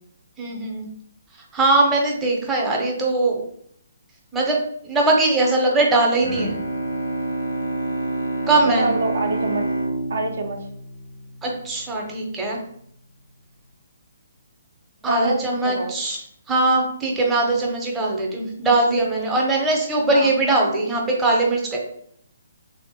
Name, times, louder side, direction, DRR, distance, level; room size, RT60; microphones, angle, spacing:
voice 1, 0.4-0.9 1.5-3.4 4.3-4.6 4.8-6.5 8.5-8.9 11.4-12.6 15.0-21.8, right 2 dB, 10° right, -1 dB, 0.6 m, -21 dB
Bowed string instrument, 6.2-11.8, right 2 dB, 80° left, 0.6 m, -28 dB
voice 2, 8.7-9.6 10.1-10.6 15.1-15.9 20.1-20.3, right 2 dB, 60° right, 3 dB, 0.4 m, -26 dB
3.3 x 2.0 x 2.7 m, 0.67 s
figure-of-eight pair, 135°, 0 cm